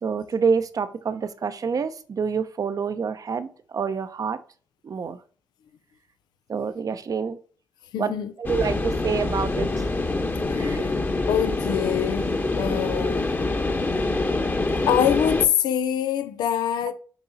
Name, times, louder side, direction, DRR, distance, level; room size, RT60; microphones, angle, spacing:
voice 1, 0.0-4.4 4.8-5.2 6.5-7.4 8.0-8.1 8.4-9.8 10.6-10.9, right 6 dB, 55° right, 0.8 m, -27 dB
voice 2, 7.9-8.3 10.4-11.0 11.3-13.3 14.9-16.9, left 9 dB, 85° left, 0.6 m, -25 dB
sound 1, 8.4-15.5, left 2 dB, 30° left, 1.2 m, -25 dB
7.1 x 4.7 x 4.1 m
supercardioid pair, 50°, 7 cm